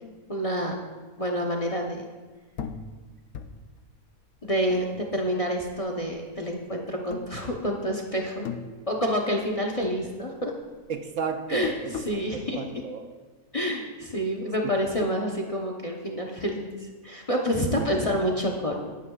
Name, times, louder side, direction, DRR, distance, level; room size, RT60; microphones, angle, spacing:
voice 1, 0.0-0.8 1.2-2.0 4.4-8.5 8.9-10.5 11.5-11.8 12.1-12.6 13.5-18.9, equal, 30° left, 1 dB, 0.8 m, -28 dB
sound 1, 2.6-5.4 5.8-6.6 7.0-8.0 8.2-9.5 9.8-12.3, left 6 dB, 75° left, 1.1 m, -39 dB
voice 2, 10.9-12.2 12.5-13.1 14.6-14.7 17.6-17.9, right 6 dB, 65° right, 6 dB, 1.0 m, -32 dB
19.0 x 9.3 x 2.4 m, 1.3 s
omnidirectional pair, 1.6 m